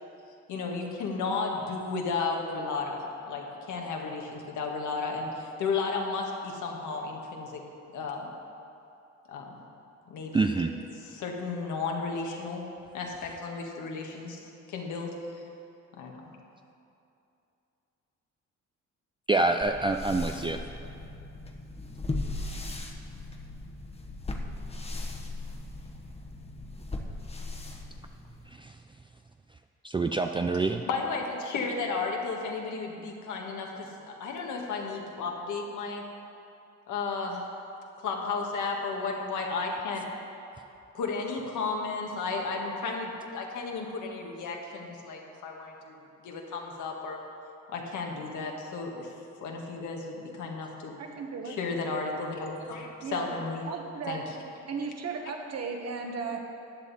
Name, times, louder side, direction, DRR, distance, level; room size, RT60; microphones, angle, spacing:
voice 1, 0.5-7.6 7.9-8.3 9.3-9.6 10.1-10.6 10.9-12.6 12.9-15.1 15.9-16.1 30.9-36.0 36.9-37.5 38.0-40.1 40.9-47.2 47.7-49.1 49.4-51.0 51.5-53.6 54.1-54.2, left 4 dB, 75° left, 1 dB, 1.7 m, -33 dB
voice 2, 10.3-10.7 19.3-20.6 28.6-28.7 29.8-30.8, right 3 dB, 15° right, 5 dB, 0.4 m, -26 dB
sound 1, 19.6-28.5, left 2 dB, 20° left, 1.1 m, -38 dB
voice 3, 51.0-51.6 53.0-53.3 53.7-54.2 54.6-56.4, right 5 dB, 55° right, 2 dB, 1.6 m, -35 dB
14.5 x 9.3 x 4.2 m, 2.7 s
cardioid pair, 90°, 30 cm